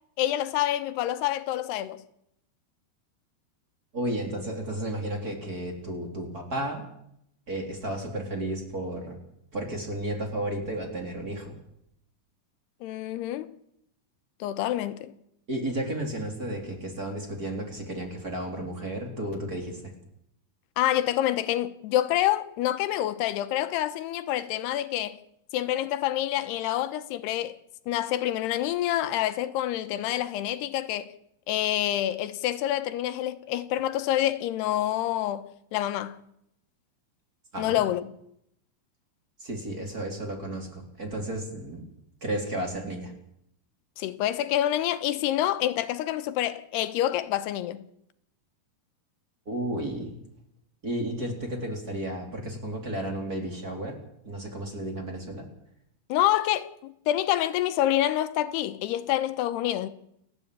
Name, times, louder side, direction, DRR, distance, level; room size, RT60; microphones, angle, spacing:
voice 1, 0.2-2.0 12.8-13.5 14.4-15.1 20.8-25.2 25.5-27.6 27.9-31.1 31.5-35.4 35.7-36.2 37.6-38.1 44.0-47.8 56.1-59.9, left 13 dB, 90° left, 3.1 m, -27 dB
voice 2, 3.9-6.8 7.5-9.2 9.5-11.5 15.5-20.0 37.5-37.8 39.4-41.8 42.2-43.1 49.5-50.1 50.8-54.0 54.2-55.5, right 1 dB, 25° right, 3.7 m, -33 dB
29.0 x 11.5 x 8.6 m
omnidirectional pair, 4.6 m